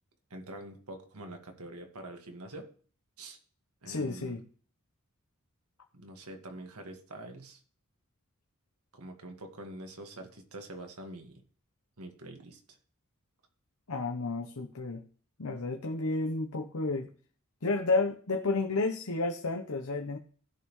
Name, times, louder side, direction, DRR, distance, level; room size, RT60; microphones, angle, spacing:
voice 1, 0.3-2.7 3.2-3.4 3.8-4.4 5.9-7.6 8.9-11.4 12.0-12.8, right 1 dB, 85° right, 4 dB, 1.9 m, -45 dB
voice 2, 3.9-4.4 13.9-15.0 15.4-17.1 17.6-20.2, left 3 dB, 75° left, 4 dB, 0.9 m, -31 dB
16.5 x 5.6 x 3.2 m, 0.43 s
head